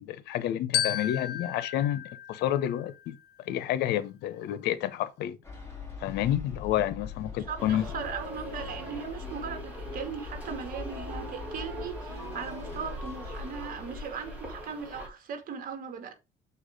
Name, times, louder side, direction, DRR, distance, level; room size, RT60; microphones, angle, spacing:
voice 1, 0.0-3.2 3.4-5.4 6.0-7.8, left 12 dB, 85° left, 1.0 m, -29 dB
Glockenspiel, 0.7-3.2, left 11 dB, 65° left, 1.3 m, -33 dB
sound 1, 5.4-14.0, left 4 dB, 15° left, 3.4 m, -42 dB
voice 2, 7.5-16.1, right 6 dB, 55° right, 2.2 m, -38 dB
sound 2, 7.6-15.1, right 1 dB, 10° right, 4.6 m, -42 dB
7.1 x 4.8 x 4.9 m
cardioid pair, 110°, 17 cm